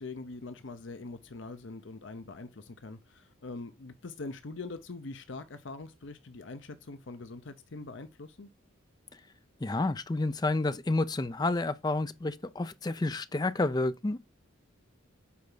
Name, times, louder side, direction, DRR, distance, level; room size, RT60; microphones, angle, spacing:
voice 1, 0.0-8.5, left 3 dB, 60° left, 0.7 m, -43 dB
voice 2, 9.6-14.2, left 2 dB, 20° left, 0.4 m, -30 dB
8.5 x 4.5 x 3.9 m
head